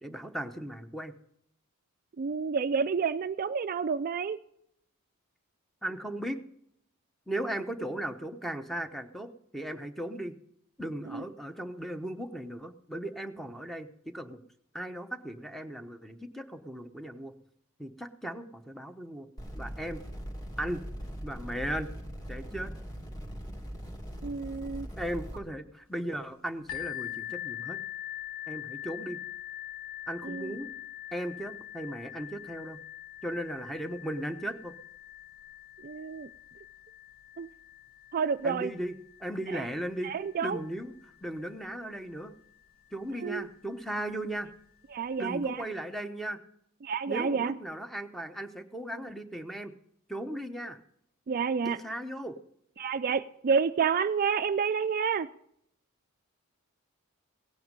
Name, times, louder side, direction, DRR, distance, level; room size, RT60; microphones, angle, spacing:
voice 1, 0.0-1.1 5.8-6.4 7.3-10.3 10.8-14.4 14.7-17.3 17.8-19.3 19.5-20.0 20.6-20.8 21.2-21.9 22.3-22.7 25.0-27.8 28.5-29.2 30.1-30.7 31.1-32.8 33.2-34.7 38.4-38.9 39.2-40.1 40.4-41.0 41.2-42.4 42.9-44.5 45.2-46.4 47.1-49.7 50.1-50.8 51.6-52.4, right 1 dB, ahead, 8 dB, 0.9 m, -37 dB
voice 2, 2.2-4.4 11.1-11.2 24.2-24.9 30.2-30.5 35.8-36.3 37.4-37.5 38.1-38.7 39.5-39.7 40.0-40.6 43.2-43.5 44.9-45.6 46.8-47.5 51.3-51.8 52.8-55.3, right 6 dB, 45° right, 11 dB, 0.4 m, -29 dB
sound 1, 19.4-25.4, equal, 20° left, 2.4 m, -41 dB
sound 2, 26.7-42.2 43.0-43.1 43.6-43.7, left 13 dB, 70° left, 1.6 m, -43 dB
17.0 x 9.3 x 5.3 m, 0.73 s
head